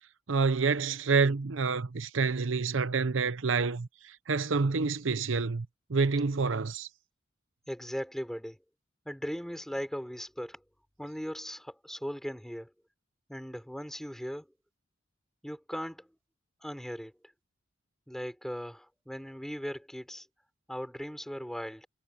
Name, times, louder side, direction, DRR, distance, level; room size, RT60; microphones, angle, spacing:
voice 1, 0.3-3.9 4.3-6.9, right 4 dB, 75° right, 0.8 m, -28 dB
voice 2, 7.7-8.6 9.0-10.6 11.0-12.7 13.3-14.5 15.4-16.1 16.6-17.1 18.1-20.3 20.7-21.9, equal, ahead, 4.9 m, -38 dB
head